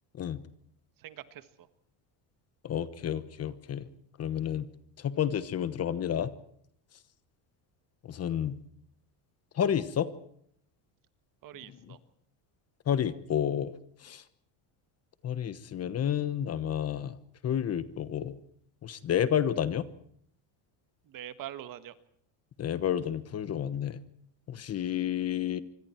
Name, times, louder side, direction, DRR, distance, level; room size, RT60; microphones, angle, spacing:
voice 1, 1.0-1.7 11.4-12.0 21.0-21.9, right 11 dB, 45° right, 12 dB, 1.6 m, -44 dB
voice 2, 2.6-3.9 4.2-4.7 5.0-6.3 8.0-8.6 9.5-10.1 12.9-13.7 14.0-14.2 15.2-17.2 17.4-18.4 18.8-19.9 22.6-24.0 24.5-25.6, left 9 dB, 30° left, 14 dB, 1.1 m, -30 dB
25.5 x 25.0 x 4.5 m, 0.65 s
cardioid pair, 155°, 48 cm